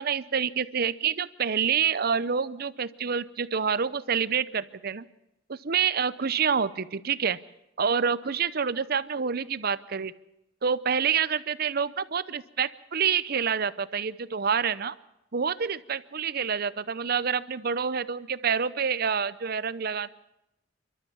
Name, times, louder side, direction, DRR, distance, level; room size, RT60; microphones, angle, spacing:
voice 1, 0.0-5.1 5.5-7.4 7.8-10.1 10.6-14.9 15.3-20.1, right 6 dB, 55° right, 16 dB, 0.7 m, -27 dB
29.0 x 12.5 x 7.3 m, 0.88 s
head